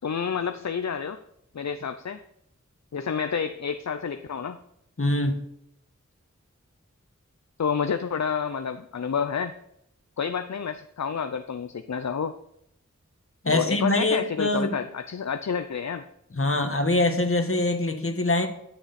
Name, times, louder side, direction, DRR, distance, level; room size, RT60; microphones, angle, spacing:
voice 1, 0.0-1.2 1.5-2.2 2.9-4.6 7.6-9.5 10.2-12.4 13.5-16.0, left 6 dB, 65° left, 9 dB, 0.5 m, -29 dB
voice 2, 5.0-5.4 13.4-14.8 16.3-18.5, left 2 dB, 45° left, 6 dB, 1.4 m, -24 dB
12.5 x 6.6 x 4.2 m, 0.76 s
wide cardioid pair, 50°, 30 cm